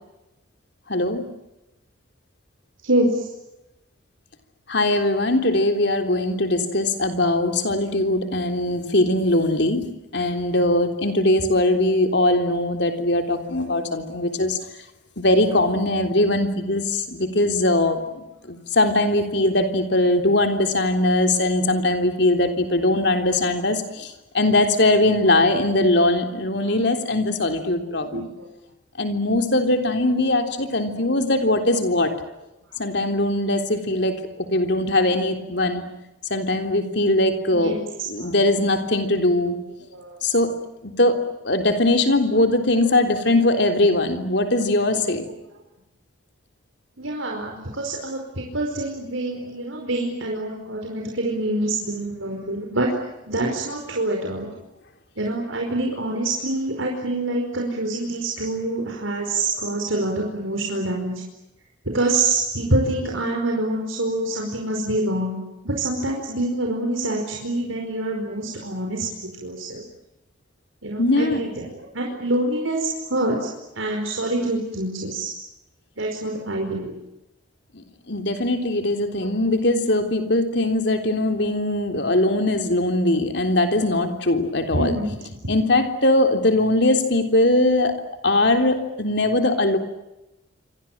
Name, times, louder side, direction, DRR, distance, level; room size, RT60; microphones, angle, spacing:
voice 1, 0.9-1.3 4.7-9.9 10.1-14.6 15.2-18.0 18.5-24.1 24.3-28.3 29.0-32.1 32.8-34.2 34.5-35.8 36.3-37.8 38.1-39.6 40.2-45.3 71.0-71.5 77.7-85.0 85.5-88.0 88.2-89.8, left 1 dB, 60° left, 6 dB, 3.6 m, -21 dB
voice 2, 2.8-3.3 26.7-26.8 28.1-28.5 37.5-37.9 38.2-38.3 39.9-40.2 47.0-52.9 53.3-54.5 55.2-61.2 61.9-65.4 65.6-69.1 69.4-69.8 70.8-73.5 73.8-75.3 76.0-76.9 84.7-85.1 85.4-85.5, right 2 dB, 85° right, 0 dB, 5.0 m, -26 dB
28.5 x 25.5 x 7.5 m, 0.94 s
head